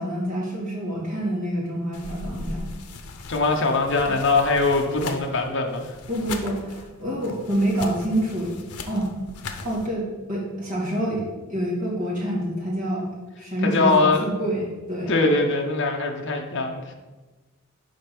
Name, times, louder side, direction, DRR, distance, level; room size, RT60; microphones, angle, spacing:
voice 1, 0.0-2.7 4.1-4.2 6.1-8.5 8.9-9.1 9.6-11.2 11.5-13.1 13.4-15.2, right 1 dB, 35° right, -6 dB, 2.2 m, -27 dB
sound 1, 1.9-9.9, left 3 dB, 90° left, 0.7 m, -39 dB
voice 2, 3.3-5.9 13.6-14.2 15.1-16.9, left 3 dB, 55° left, 1 dB, 0.8 m, -22 dB
5.1 x 4.4 x 5.9 m, 1.2 s
head